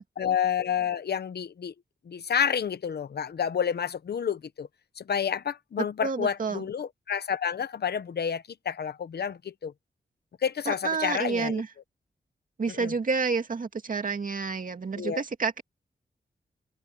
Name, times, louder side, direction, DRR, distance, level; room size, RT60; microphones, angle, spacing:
voice 1, 0.2-1.7 2.1-4.7 5.0-9.7 10.4-11.6 12.7-12.9 14.9-15.2, left 7 dB, 75° left, 0.9 m, -29 dB
voice 2, 6.0-6.6 10.7-11.7 12.6-15.6, right 4 dB, 55° right, 2.3 m, -29 dB
wide cardioid pair, 110°, 17 cm